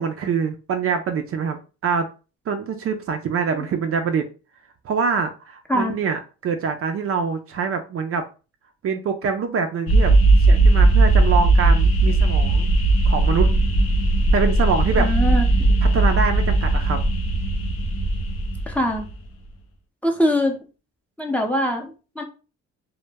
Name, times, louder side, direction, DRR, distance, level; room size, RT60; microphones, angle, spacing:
voice 1, 0.0-2.1 2.5-4.3 4.8-8.3 8.8-10.1 10.4-12.7 13.1-13.5 14.3-15.1 15.9-17.0, right 5 dB, 50° right, 6 dB, 0.4 m, -24 dB
sound 1, 9.9-19.1, right 2 dB, 55° left, 0.6 m, -18 dB
voice 2, 15.0-15.4 18.7-19.1 20.0-20.6 21.2-22.2, left 1 dB, 5° left, 2 dB, 0.5 m, -22 dB
2.1 x 2.0 x 3.2 m, 0.33 s
cardioid pair, 90°, 30 cm